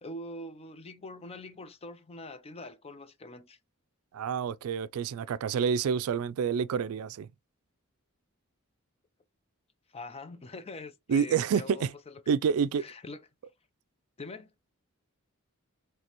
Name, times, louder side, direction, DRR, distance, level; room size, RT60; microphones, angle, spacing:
voice 1, 0.0-3.6 9.9-12.4 12.8-13.2 14.2-14.5, left 2 dB, 30° left, 0.6 m, -44 dB
voice 2, 4.1-7.3 11.1-11.9 12.3-12.8, right 7 dB, 80° right, 0.3 m, -28 dB
5.1 x 3.3 x 3.0 m
head